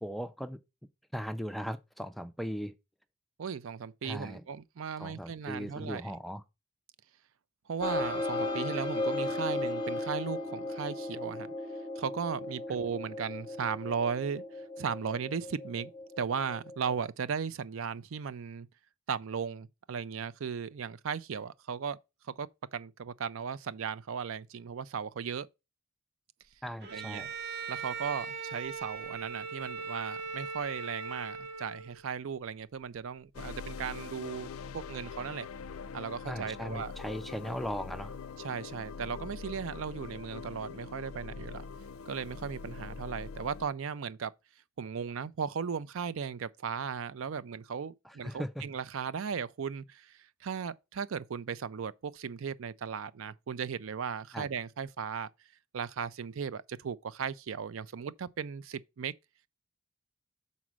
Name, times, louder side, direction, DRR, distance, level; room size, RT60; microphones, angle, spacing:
voice 1, 0.0-0.6 1.1-2.7 4.0-4.4 5.0-6.4 26.6-27.3 36.3-38.2 48.0-48.7 54.3-54.5, equal, ahead, 0.3 m, -38 dB
voice 2, 3.4-6.0 7.7-11.5 12.0-14.4 14.8-15.9 16.2-18.7 19.1-22.0 22.3-25.5 26.9-27.3 27.7-34.5 34.7-35.5 35.9-36.9 38.4-41.6 42.1-44.3 44.8-55.3 55.7-59.1, right 6 dB, 70° right, 0.4 m, -36 dB
sound 1, 7.8-17.0, left 2 dB, 20° left, 0.8 m, -36 dB
Bowed string instrument, 26.8-32.1, right 5 dB, 50° right, 0.9 m, -39 dB
sound 2, 33.3-43.7, left 5 dB, 85° left, 0.4 m, -43 dB
6.1 x 4.1 x 6.0 m
head